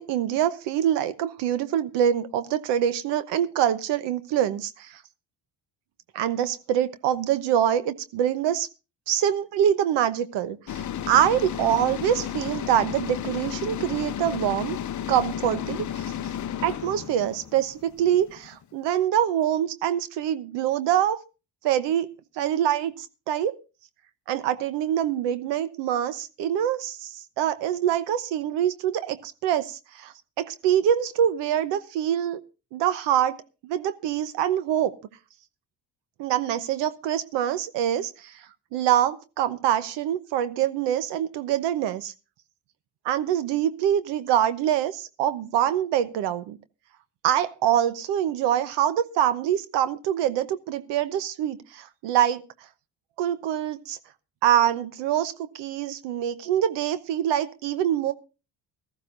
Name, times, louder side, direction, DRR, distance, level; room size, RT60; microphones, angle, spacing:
voice 1, 0.0-5.0 6.1-8.7 9.1-14.8 15.1-16.0 16.6-21.2 21.6-22.1 22.4-23.5 24.3-32.4 32.7-33.4 33.6-34.9 36.2-38.3 38.7-42.1 43.0-46.6 47.2-52.4 53.2-54.0 54.4-58.1, right 10 dB, 90° right, 13 dB, 1.0 m, -25 dB
sound 1, 10.7-18.6, left 10 dB, 45° left, 0.7 m, -33 dB
18.5 x 14.0 x 2.6 m, 0.31 s
cardioid pair, 95°, 41 cm